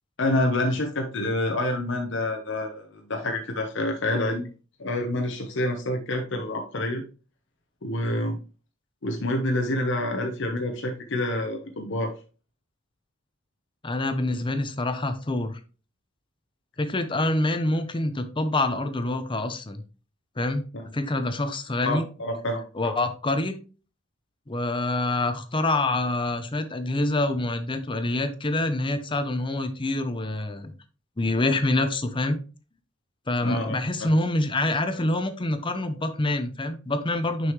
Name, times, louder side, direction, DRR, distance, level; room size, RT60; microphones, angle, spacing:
voice 1, 0.2-4.5 4.8-7.0 7.8-8.4 9.0-12.1 14.3-14.4 20.7-20.8 21.8-23.0 33.4-34.1, left 1 dB, 65° left, 2 dB, 0.9 m, -27 dB
voice 2, 13.8-15.6 16.8-19.8 20.4-20.6 20.9-22.1 22.7-23.6 24.5-30.7 31.2-32.4 33.3-37.5, left 2 dB, 25° left, 9 dB, 0.7 m, -26 dB
6.3 x 5.5 x 3.1 m, 0.35 s
head